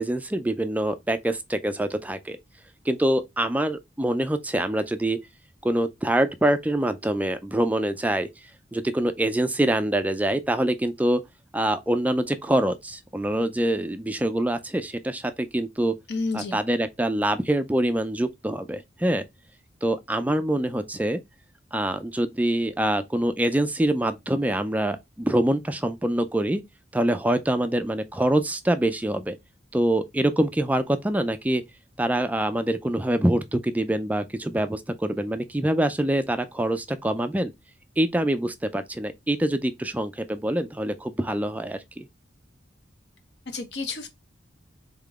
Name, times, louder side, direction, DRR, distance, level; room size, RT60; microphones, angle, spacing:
voice 1, 0.0-2.4 2.9-5.2 5.6-8.3 8.7-11.2 11.5-16.0 16.3-19.2 19.8-21.2 21.7-26.6 26.9-29.4 29.7-31.6 32.0-37.5 38.0-42.1, right 1 dB, 10° right, 0.3 m, -25 dB
voice 2, 16.1-16.6 43.5-44.1, left 3 dB, 60° left, 1.0 m, -30 dB
3.8 x 3.7 x 3.5 m
head